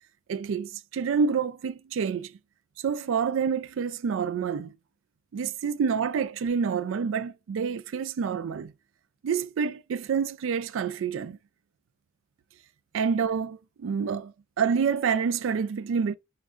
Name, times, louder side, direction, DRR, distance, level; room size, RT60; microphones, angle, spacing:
voice 1, 0.3-2.4 2.8-4.7 5.3-8.7 9.2-11.4 12.9-16.1, right 6 dB, 70° right, 0.3 m, -28 dB
3.1 x 2.4 x 3.5 m
head